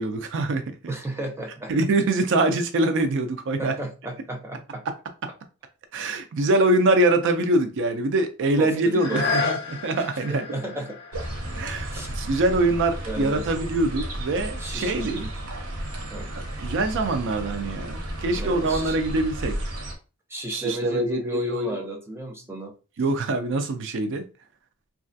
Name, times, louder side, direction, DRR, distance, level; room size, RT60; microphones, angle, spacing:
voice 1, 0.0-0.9 1.7-3.7 5.9-10.4 11.6-15.3 16.3-19.6 20.5-21.8 23.0-24.2, right 2 dB, 55° right, 0.4 m, -24 dB
voice 2, 0.9-1.7 3.6-4.8 8.6-9.3 10.0-11.0 11.9-12.1 13.1-13.4 14.6-14.9 16.1-16.3 18.3-18.9 20.3-22.7, right 1 dB, 10° right, 0.6 m, -33 dB
sound 1, 8.9-14.6 15.1-15.2, left 4 dB, 50° left, 0.5 m, -33 dB
sound 2, 11.1-19.9, right 1 dB, 85° right, 0.8 m, -33 dB
3.1 x 2.3 x 2.5 m
head